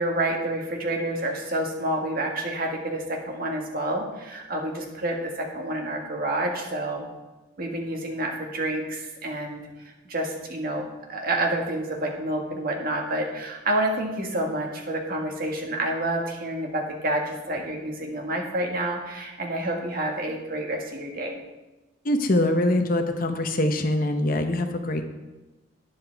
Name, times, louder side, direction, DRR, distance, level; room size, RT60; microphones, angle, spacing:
voice 1, 0.0-7.0 7.6-9.6 10.1-21.4, right 1 dB, 45° right, 1 dB, 1.7 m, -28 dB
voice 2, 22.0-25.1, left 1 dB, 45° left, 6 dB, 0.8 m, -23 dB
12.0 x 9.9 x 3.5 m, 1.1 s
head